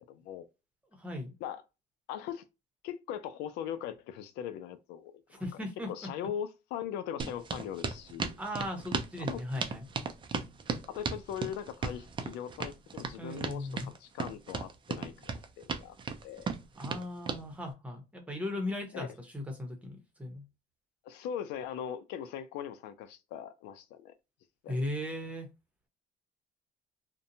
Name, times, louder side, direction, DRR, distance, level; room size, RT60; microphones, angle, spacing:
voice 1, 0.1-0.5 1.4-1.6 2.1-2.4 2.8-5.2 5.9-8.4 9.2-9.4 10.9-16.0 16.2-16.5 18.9-19.1 21.0-24.1 24.6-24.8, left 9 dB, 90° left, 0.4 m, -40 dB
voice 2, 1.0-1.3 5.3-5.9 8.4-9.8 13.2-13.9 16.8-20.4 24.7-25.5, left 1 dB, 10° right, 0.9 m, -37 dB
sound 1, 7.2-17.4, right 5 dB, 30° right, 0.4 m, -36 dB
2.6 x 2.2 x 2.6 m
cardioid pair, 110°, 17 cm